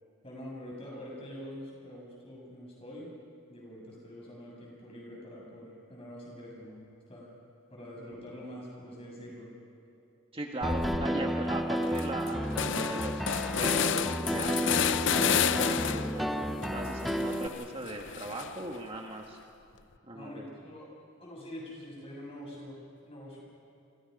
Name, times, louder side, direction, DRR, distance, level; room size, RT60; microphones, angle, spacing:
voice 1, 0.2-3.1 3.5-6.8 7.1-7.3 7.7-9.5 20.1-20.9 21.2-23.4, equal, 30° left, -2 dB, 7.3 m, -45 dB
voice 2, 10.3-12.5 12.9-13.2 13.5-16.3 16.6-19.4 20.1-20.5, right 1 dB, 25° right, 1 dB, 1.5 m, -38 dB
sound 1, 10.6-11.1 11.5-11.6 11.8-16.2 16.6-18.7, left 8 dB, 60° left, 0.6 m, -31 dB
Piano, 10.6-17.5, equal, ahead, 0.8 m, -32 dB
29.0 x 24.5 x 5.4 m, 2.7 s
head